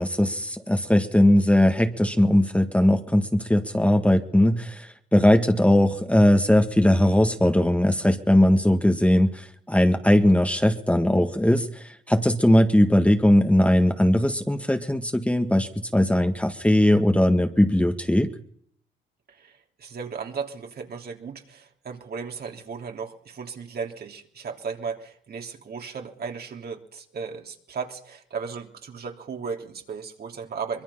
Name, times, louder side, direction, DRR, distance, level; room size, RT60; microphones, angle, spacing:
voice 1, 0.0-18.3, left 1 dB, 5° left, 6 dB, 1.8 m, -20 dB
voice 2, 19.3-30.8, right 5 dB, 55° right, 3 dB, 3.2 m, -35 dB
24.0 x 22.0 x 5.7 m, 0.64 s
cardioid pair, 90°, 20 cm